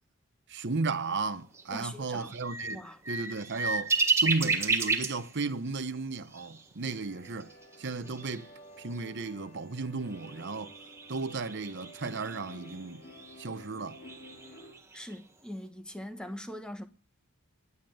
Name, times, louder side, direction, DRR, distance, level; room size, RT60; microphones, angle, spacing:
voice 1, 0.5-3.9 4.2-7.5 7.8-8.5 8.8-10.8 11.1-13.0 13.4-14.0, right 3 dB, 50° right, 0.9 m, -34 dB
sound 1, 1.5-1.6 2.2-5.3 5.7-5.8 6.3-6.6 6.9-7.0 7.2-8.4 8.9-9.0 10.1-13.4 13.9-15.1, right 3 dB, 10° right, 1.6 m, -32 dB
voice 2, 1.7-2.3 2.7-3.0 14.9-16.9, equal, 5° left, 1.2 m, -42 dB
sound 2, 6.9-14.7, equal, 40° left, 2.6 m, -52 dB
11.5 x 9.6 x 8.8 m
head